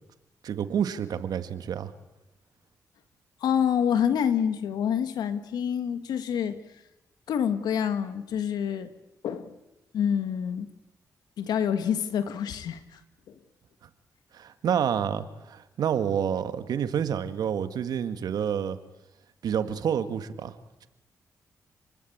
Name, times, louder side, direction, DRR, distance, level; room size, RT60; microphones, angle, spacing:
voice 1, 0.4-1.9 14.3-18.8 19.4-20.6, right 8 dB, 75° right, 10 dB, 1.9 m, -28 dB
voice 2, 3.4-6.6 7.3-8.9 9.2-9.5 9.9-10.7 11.4-13.0 13.3-13.4, left 8 dB, 85° left, 10 dB, 1.9 m, -27 dB
29.5 x 21.0 x 8.8 m, 0.94 s
cardioid pair, 65°, 7 cm